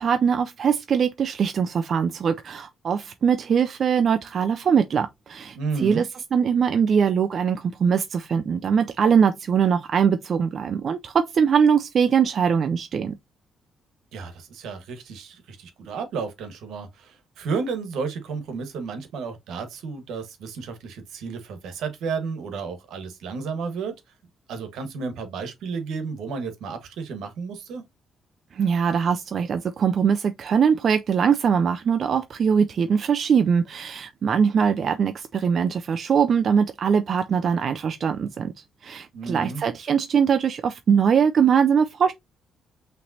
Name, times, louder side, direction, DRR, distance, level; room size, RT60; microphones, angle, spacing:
voice 1, 0.0-13.2 28.5-38.5 38.8-42.1, right 7 dB, 55° right, 0.4 m, -22 dB
voice 2, 5.5-6.0 14.1-23.9 24.5-27.8 39.1-39.6, right 5 dB, 80° right, 1.4 m, -32 dB
5.8 x 3.2 x 2.7 m
cardioid pair, 90°, 0 cm